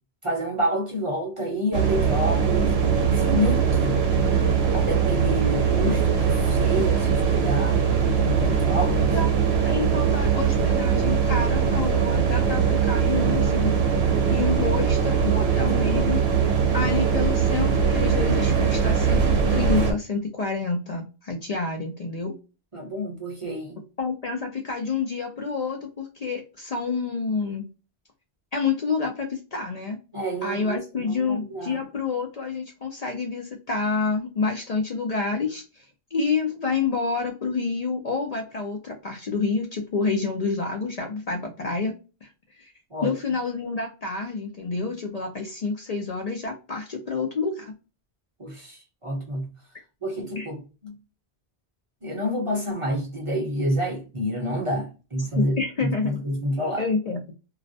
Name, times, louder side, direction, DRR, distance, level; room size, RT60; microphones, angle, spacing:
voice 1, 0.2-2.7 3.1-4.0 4.7-7.8 8.2-9.2 15.2-15.5 15.8-16.0 22.7-23.8 30.1-31.8 42.9-43.1 48.4-49.5 50.0-51.0 52.0-55.5 55.8-56.8, equal, 35° right, 0.7 m, -28 dB
sound 1, 1.7-19.9, right 6 dB, 80° right, 0.8 m, -21 dB
voice 2, 9.6-13.7 14.3-16.4 16.7-22.3 24.0-27.7 28.5-30.0 30.4-41.9 42.2-42.3 42.6-42.7 43.0-47.7 50.4-50.5 55.4-56.2 56.8-57.3, left 4 dB, 55° left, 0.5 m, -28 dB
2.3 x 2.1 x 2.5 m
omnidirectional pair, 1.1 m